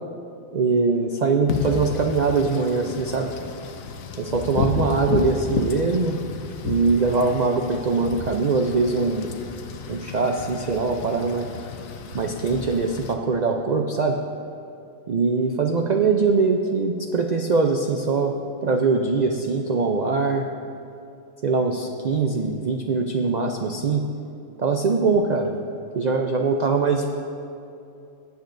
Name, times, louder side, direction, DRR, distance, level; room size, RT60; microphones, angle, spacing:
voice 1, 0.5-3.3 4.2-6.2 6.6-9.3 9.9-11.5 12.1-14.2 15.1-18.3 18.6-20.5 21.4-24.0 24.6-25.5 25.9-27.2, right 4 dB, 90° right, 3 dB, 0.3 m, -22 dB
Wind / Rain, 1.5-13.1, left 6 dB, 75° left, 1.1 m, -32 dB
18.0 x 8.0 x 2.6 m, 2.7 s
omnidirectional pair, 1.5 m